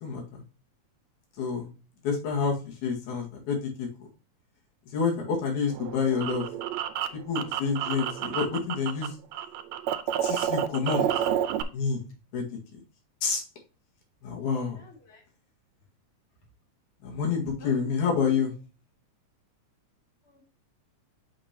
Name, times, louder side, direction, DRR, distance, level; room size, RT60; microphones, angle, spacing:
voice 1, 0.0-0.4 1.4-1.7 2.0-3.9 4.9-6.5 7.1-9.1 10.2-11.0 11.7-12.0 12.3-12.4 13.2-13.4 14.2-14.8 17.0-18.5, left 5 dB, 85° left, 0 dB, 3.3 m, -28 dB
sound 1, 5.7-9.1 9.3-11.6, right 10 dB, 80° right, 1.9 m, -29 dB
voice 2, 14.8-15.2 17.6-17.9 18.2-18.4 20.3-20.4, left 5 dB, 45° left, -3 dB, 2.9 m, -47 dB
6.8 x 6.6 x 2.8 m, 0.34 s
omnidirectional pair, 3.3 m